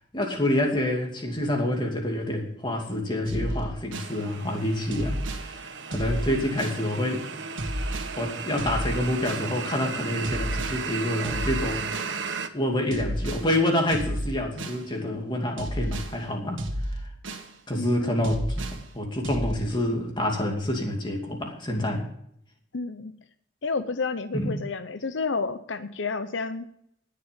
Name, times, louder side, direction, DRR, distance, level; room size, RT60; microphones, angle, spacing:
voice 1, 0.0-7.3 8.2-12.2 12.5-16.6 17.7-18.7 18.9-22.1 24.3-24.6, left 1 dB, 25° left, 1 dB, 2.6 m, -27 dB
sound 1, 3.3-4.2 4.9-5.5 5.9-6.8 7.6-8.2 8.6-9.5 10.2-10.8 11.2-12.2 12.9-13.5 13.9-14.8 15.6-16.1 16.6-17.5 18.2-18.8 19.2-19.5, equal, 90° right, 1.9 m, -31 dB
sound 2, 3.9-12.5, right 5 dB, 75° right, 1.1 m, -35 dB
voice 2, 17.7-18.3 22.7-23.1 23.6-26.6, left 4 dB, 75° left, 10 dB, 0.7 m, -30 dB
19.5 x 6.8 x 5.2 m, 0.71 s
head